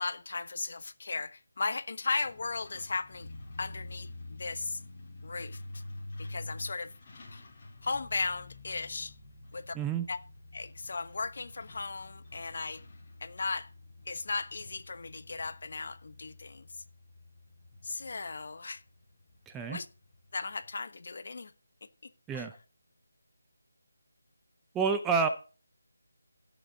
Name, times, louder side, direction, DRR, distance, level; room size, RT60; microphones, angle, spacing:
voice 1, 0.0-3.3 3.6-4.8 5.2-5.6 6.2-6.9 7.3-7.4 7.8-9.1 9.5-9.7 10.1-10.2 10.5-12.8 13.2-13.7 14.1-16.6 17.8-18.8 19.7-19.9 20.3-21.5 22.3-22.5, left 4 dB, 50° left, 1.1 m, -36 dB
Truck, 2.2-20.7, left 2 dB, 25° left, 3.8 m, -49 dB
voice 2, 9.7-10.1 19.5-19.8 22.3-22.6 24.7-25.3, right 5 dB, 5° right, 0.5 m, -29 dB
16.5 x 7.0 x 4.0 m
figure-of-eight pair, 170°, 0 cm